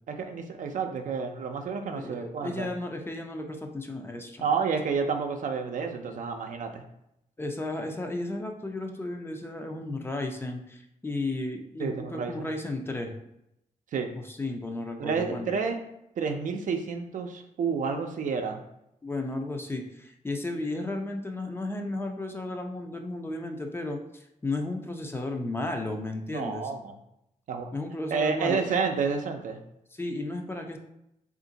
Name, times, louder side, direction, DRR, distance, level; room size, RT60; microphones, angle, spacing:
voice 1, 0.1-2.7 4.4-6.8 11.8-12.5 13.9-14.1 15.0-15.8 16.2-18.6 26.3-26.8 27.5-27.7 28.1-29.6, right 5 dB, 70° right, 5 dB, 0.5 m, -30 dB
voice 2, 1.9-4.5 7.4-13.1 14.1-15.5 19.0-26.7 27.7-28.7 29.9-30.8, left 2 dB, 15° left, 3 dB, 0.4 m, -34 dB
3.6 x 2.5 x 3.9 m, 0.82 s
wide cardioid pair, 120°, 14 cm